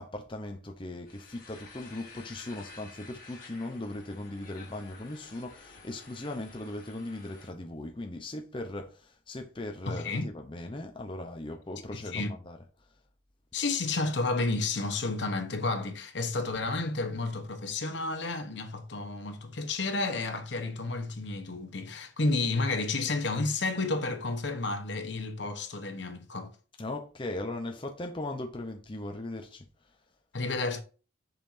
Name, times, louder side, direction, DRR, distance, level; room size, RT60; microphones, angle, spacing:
voice 1, 0.0-12.6 26.8-30.0, left 2 dB, 25° left, 0.7 m, -38 dB
sound 1, 1.1-7.5, left 4 dB, 45° left, 1.9 m, -51 dB
voice 2, 9.9-10.2 11.9-12.3 13.5-26.6 30.3-30.8, left 3 dB, 65° left, 1.1 m, -31 dB
7.3 x 5.5 x 2.7 m
head